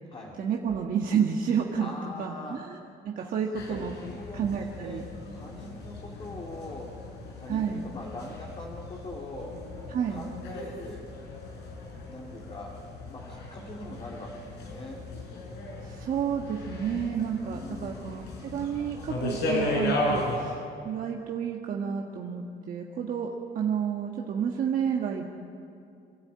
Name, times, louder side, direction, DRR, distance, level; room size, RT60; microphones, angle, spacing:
voice 1, 0.4-2.8 3.0-3.9 4.3-5.0 7.5-7.9 9.9-10.3 15.8-25.2, right 7 dB, 55° right, 0 dB, 1.6 m, -30 dB
voice 2, 1.8-2.6 3.2-3.3 3.7-5.0 5.3-7.0 7.4-9.6 10.1-11.1 12.1-12.7 13.1-15.0 17.4-18.1, left 2 dB, 30° left, -2 dB, 2.7 m, -42 dB
sound 1, 3.5-20.4, left 1 dB, 85° left, 5.6 m, -36 dB
26.0 x 12.5 x 8.8 m, 2.5 s
cardioid pair, 110°, 17 cm